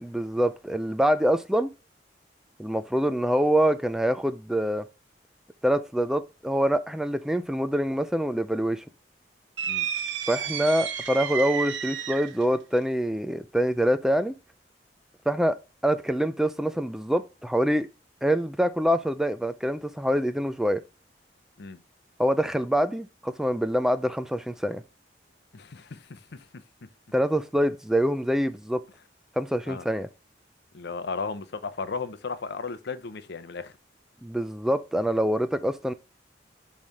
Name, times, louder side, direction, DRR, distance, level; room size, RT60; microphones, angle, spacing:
voice 1, 0.0-1.7 2.6-4.8 5.6-8.8 10.3-14.3 15.3-15.6 15.8-17.9 18.2-20.8 22.2-24.8 27.1-28.8 29.4-30.1 34.2-35.9, equal, 5° right, 0.4 m, -25 dB
sound 1, 9.6-12.4, right 8 dB, 85° right, 0.8 m, -31 dB
voice 2, 25.5-26.5 29.7-29.8 30.7-33.7, left 4 dB, 65° left, 0.7 m, -35 dB
7.1 x 3.3 x 5.5 m
head